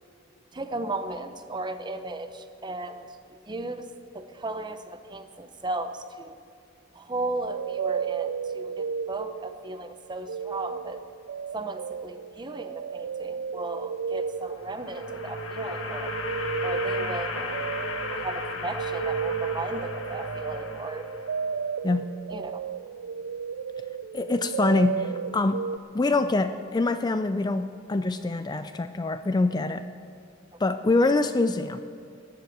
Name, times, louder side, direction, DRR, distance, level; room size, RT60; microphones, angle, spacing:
voice 1, 0.5-3.9 4.1-6.3 6.9-11.0 11.5-16.1 16.6-17.6 18.1-21.0 22.3-22.6, right 2 dB, 25° right, 8 dB, 0.8 m, -35 dB
sound 1, 7.4-9.8 10.0-25.8, right 6 dB, 80° right, 0.3 m, -33 dB
sound 2, 14.4-21.6, left 2 dB, 90° left, 1.6 m, -35 dB
voice 2, 24.1-25.6 25.9-29.8 30.6-31.8, left 2 dB, 20° left, 10 dB, 0.4 m, -25 dB
15.0 x 7.8 x 9.7 m, 2.3 s
head